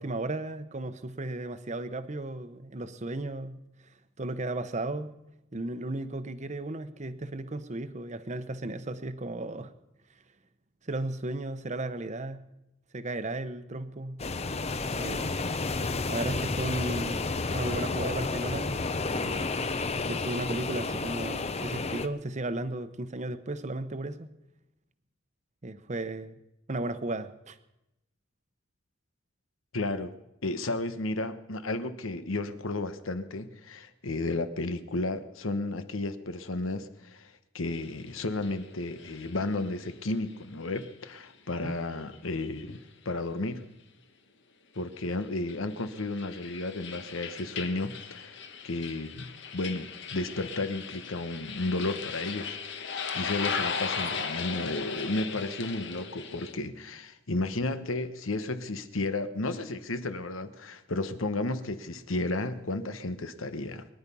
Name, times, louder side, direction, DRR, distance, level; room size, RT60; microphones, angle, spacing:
voice 1, 0.0-3.6 4.2-5.1 5.5-9.7 10.8-12.5 12.9-14.2 14.9-15.3 16.1-18.8 19.1-19.5 20.1-24.3 25.6-26.4 26.7-27.6 41.6-41.7, right 2 dB, 35° right, 12 dB, 0.9 m, -35 dB
sound 1, 14.2-22.1, left 3 dB, 30° left, 0.7 m, -31 dB
voice 2, 29.7-30.1 30.4-43.7 44.7-48.4 48.6-63.9, left 2 dB, 90° left, 11 dB, 1.2 m, -33 dB
sound 2, 37.7-40.4 40.7-40.9 41.9-42.2 42.4-42.6 45.0-56.5, left 6 dB, 60° left, 1.4 m, -37 dB
23.0 x 10.5 x 5.5 m, 0.90 s
head